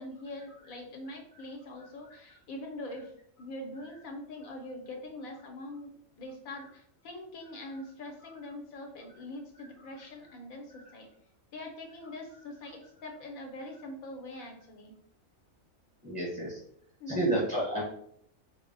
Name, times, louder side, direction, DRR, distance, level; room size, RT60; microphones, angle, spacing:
voice 1, 0.0-3.1 3.4-11.1 11.5-14.9 17.0-17.4, left 1 dB, 90° left, 3 dB, 1.3 m, -43 dB
voice 2, 16.0-16.6 17.1-17.8, right 1 dB, 10° right, -6 dB, 0.8 m, -30 dB
4.0 x 2.1 x 3.8 m, 0.68 s
omnidirectional pair, 1.4 m